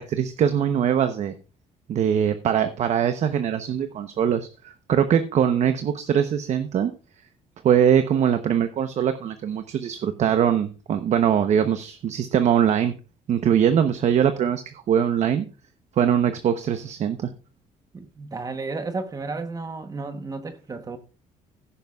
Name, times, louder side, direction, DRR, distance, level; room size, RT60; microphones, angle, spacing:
voice 1, 0.0-1.3 1.9-6.9 7.6-13.0 13.3-15.4 16.0-17.3, right 8 dB, 55° right, 0.9 m, -22 dB
voice 2, 17.9-21.0, right 3 dB, 25° right, 1.1 m, -33 dB
16.0 x 9.9 x 2.4 m
cardioid pair, 130°, 14 cm